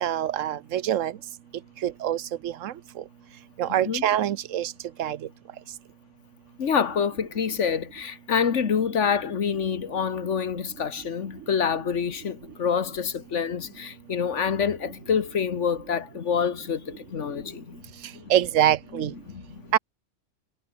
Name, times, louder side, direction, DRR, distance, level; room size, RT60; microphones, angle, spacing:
voice 1, 0.0-1.1 1.8-2.2 2.4-2.7 3.6-4.7 5.0-5.2 18.3-19.1 19.7-19.8, right 11 dB, 90° right, 1.1 m, -24 dB
voice 2, 3.7-4.1 6.6-17.8 18.1-18.3 18.9-19.8, left 7 dB, 70° left, 1.6 m, -27 dB
omnidirectional pair, 1.3 m